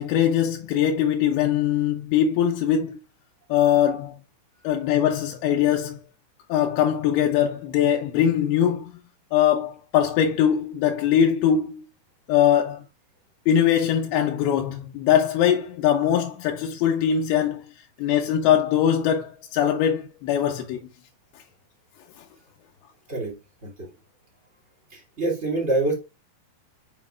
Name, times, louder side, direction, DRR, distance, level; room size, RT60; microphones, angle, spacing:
voice 1, 0.0-3.0 3.5-4.2 4.6-6.0 6.5-9.0 9.3-11.8 12.3-12.8 13.5-17.6 18.0-20.8 22.2-22.3, left 9 dB, 80° left, 2.5 m, -22 dB
voice 2, 24.9-25.9, right 2 dB, 20° right, 2.2 m, -26 dB
7.1 x 5.6 x 2.4 m
omnidirectional pair, 4.7 m